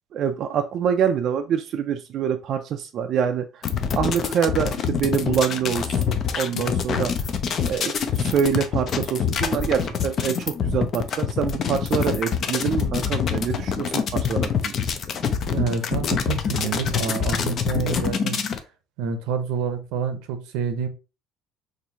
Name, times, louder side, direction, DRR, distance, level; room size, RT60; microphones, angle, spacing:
voice 1, 0.1-3.6 3.9-7.3 7.6-14.8, right 8 dB, 50° right, 0.3 m, -25 dB
sound 1, 3.6-18.6, left 7 dB, 40° left, 0.4 m, -25 dB
voice 2, 15.4-18.4 19.0-20.9, right 6 dB, 85° right, 0.6 m, -28 dB
4.3 x 2.6 x 2.7 m
cardioid pair, 140°, 0 cm